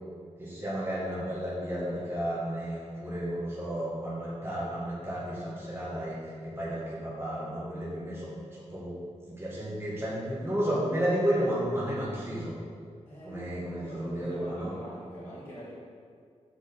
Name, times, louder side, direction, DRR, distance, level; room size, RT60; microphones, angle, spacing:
voice 1, 0.4-9.0 9.2-12.5 13.2-14.7, equal, 20° right, -8 dB, 1.8 m, -32 dB
voice 2, 13.1-13.4 13.8-15.7, equal, 20° left, -10 dB, 1.9 m, -43 dB
6.3 x 5.1 x 6.8 m, 2.2 s
wide cardioid pair, 155°, 12 cm